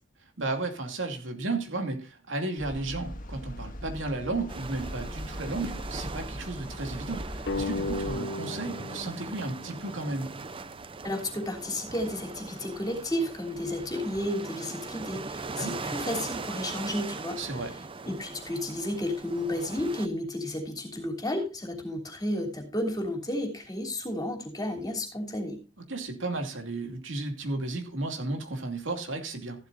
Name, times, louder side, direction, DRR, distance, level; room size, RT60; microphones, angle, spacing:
voice 1, 0.4-10.3 15.6-15.8 17.4-17.7 25.9-29.7, right 2 dB, 80° right, 4 dB, 2.6 m, -33 dB
sound 1, 2.6-8.2, equal, 45° left, 1.6 m, -40 dB
sound 2, 4.5-20.1, right 3 dB, 30° right, 0.6 m, -40 dB
sound 3, 7.5-10.7, left 3 dB, 60° left, 0.8 m, -36 dB
voice 2, 11.0-17.4 18.0-25.6, left 1 dB, 20° left, 2 dB, 3.3 m, -32 dB
14.5 x 12.0 x 2.6 m, 0.31 s
head